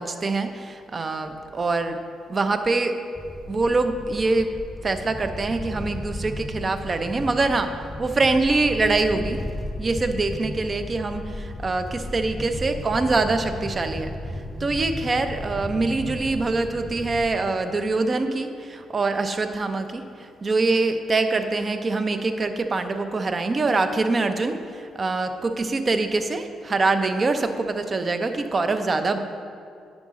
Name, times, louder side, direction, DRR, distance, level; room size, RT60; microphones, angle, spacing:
voice 1, 0.0-2.0 2.3-3.0 3.5-4.6 4.8-9.4 9.8-29.2, right 3 dB, 35° right, 8 dB, 0.5 m, -24 dB
sound 1, 3.1-17.3, left 1 dB, 10° left, 0.8 m, -35 dB
9.7 x 5.0 x 3.7 m, 2.4 s
cardioid pair, 90°, 0 cm